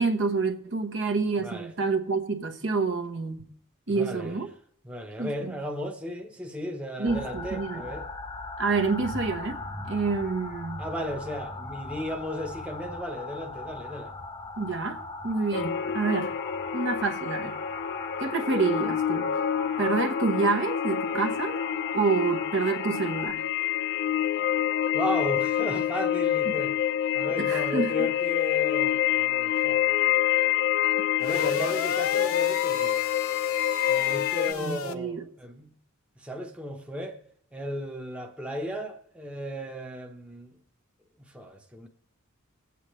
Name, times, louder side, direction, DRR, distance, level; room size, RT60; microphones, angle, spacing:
voice 1, 0.0-3.5 3.9-4.5 5.2-5.5 7.0-7.9 8.6-9.6 9.9-10.8 14.6-16.3 16.7-17.6 18.2-19.3 19.8-21.6 21.9-23.5 27.4-28.1 34.6-35.2, right 4 dB, 60° right, 1.1 m, -28 dB
voice 2, 1.4-1.7 3.9-4.4 4.8-8.1 10.8-14.1 24.9-26.8 27.1-29.9 31.2-33.1 33.9-35.7 36.2-37.2 37.5-40.6 41.3-41.9, equal, 5° right, 0.9 m, -35 dB
sound 1, 7.1-23.3, left 2 dB, 20° left, 0.7 m, -39 dB
sound 2, 15.5-34.5, left 11 dB, 55° left, 0.3 m, -27 dB
sound 3, 31.2-34.9, left 6 dB, 75° left, 0.8 m, -34 dB
21.0 x 8.3 x 3.1 m
head